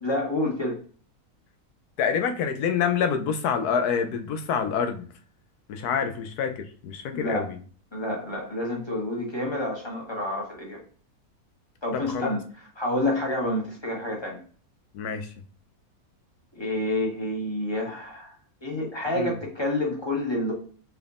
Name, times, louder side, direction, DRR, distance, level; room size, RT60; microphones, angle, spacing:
voice 1, 0.0-0.8 6.0-6.1 7.1-7.5 7.9-10.8 11.8-12.4 12.8-14.4 16.5-18.3 18.6-20.5, left 1 dB, 20° left, -2 dB, 1.3 m, -28 dB
voice 2, 2.0-5.1 5.7-7.6 11.9-12.3 14.9-15.3 19.2-19.3, left 7 dB, 80° left, 7 dB, 1.2 m, -27 dB
4.9 x 3.4 x 2.5 m, 0.42 s
omnidirectional pair, 1.6 m